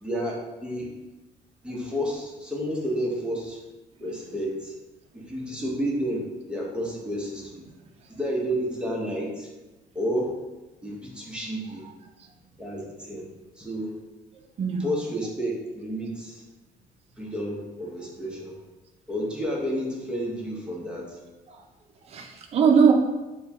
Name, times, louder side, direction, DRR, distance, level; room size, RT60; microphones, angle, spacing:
voice 1, 0.0-0.9 1.6-3.6 4.0-4.7 5.1-7.6 8.1-9.5 9.9-10.3 10.8-11.9 12.6-13.3 13.5-14.0 14.8-16.4 17.2-18.6 19.1-21.2 22.3-22.4, equal, 5° right, -3 dB, 0.9 m, -31 dB
voice 2, 14.3-15.0 21.5-21.7 22.0-22.9, right 6 dB, 40° right, 3 dB, 0.5 m, -22 dB
4.4 x 2.2 x 3.4 m, 1.1 s
cardioid pair, 110°, 17 cm